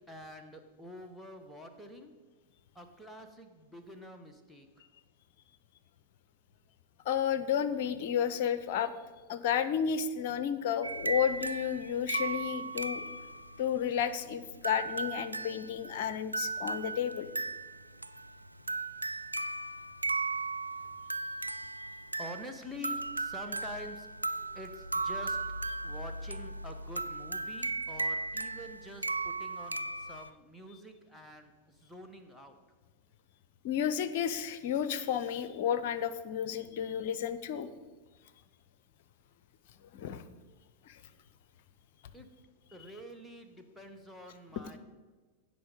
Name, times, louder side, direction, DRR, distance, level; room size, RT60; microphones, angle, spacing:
voice 1, 0.1-2.1 2.7-4.7 22.2-24.1 24.5-25.4 25.8-32.6 42.1-42.3 42.7-44.8, equal, ahead, 3 dB, 1.2 m, -47 dB
voice 2, 7.0-8.9 9.3-13.1 13.6-17.3 33.6-37.7 39.9-40.2 40.9-41.0, left 8 dB, 50° left, 14 dB, 0.7 m, -32 dB
sound 1, 10.8-30.3, right 3 dB, 85° right, 0.3 m, -37 dB
16.0 x 5.3 x 5.2 m, 1.3 s
figure-of-eight pair, 90°, 0 cm